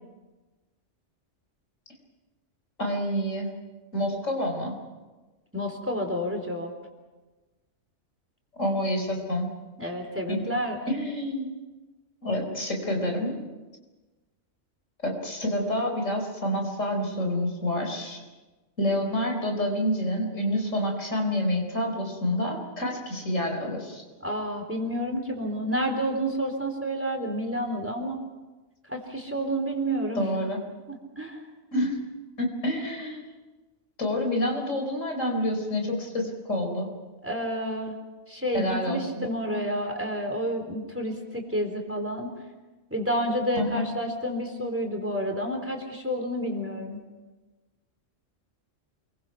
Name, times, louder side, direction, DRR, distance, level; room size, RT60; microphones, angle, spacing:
voice 1, 2.8-3.5 3.9-4.7 8.6-9.5 10.3-10.4 10.9-11.5 12.2-13.4 15.0-18.2 18.8-24.0 30.2-30.6 31.7-32.0 32.4-33.2 34.0-36.9 38.5-39.2 43.6-43.9, left 1 dB, 85° left, 2 dB, 5.0 m, -28 dB
voice 2, 5.5-6.7 9.8-10.8 24.2-28.2 28.9-30.3 30.9-31.4 37.2-38.0 38.3-42.3 42.9-47.0, equal, 10° right, 3 dB, 3.9 m, -29 dB
29.0 x 23.0 x 5.9 m, 1.2 s
omnidirectional pair, 1.3 m